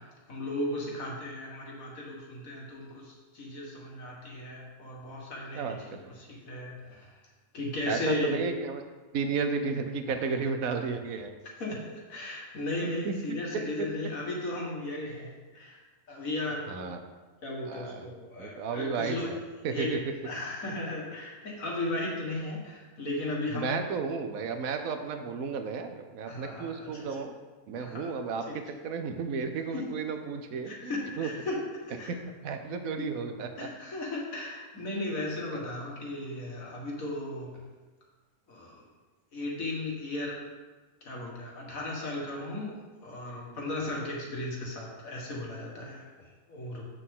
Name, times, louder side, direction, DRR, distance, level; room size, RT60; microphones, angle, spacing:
voice 1, 0.3-5.8 6.2-7.1 7.5-8.4 11.6-15.8 16.1-16.7 17.4-19.3 19.7-23.8 26.3-27.1 27.7-28.1 28.5-28.6 29.7-29.8 30.7-31.6 31.9-32.1 33.0-33.1 33.6-37.5 38.5-38.8 39.3-40.3 41.0-46.1 46.5-46.8, left 2 dB, 75° left, -3 dB, 2.2 m, -36 dB
voice 2, 5.5-6.1 7.9-8.8 9.1-11.3 13.0-13.4 16.7-17.0 17.6-18.1 18.4-19.4 19.6-20.0 23.5-27.3 27.7-31.3 32.1-33.7 35.5-35.7, right 5 dB, 80° right, 6 dB, 1.2 m, -33 dB
8.4 x 6.6 x 3.8 m, 1.3 s
omnidirectional pair, 1.5 m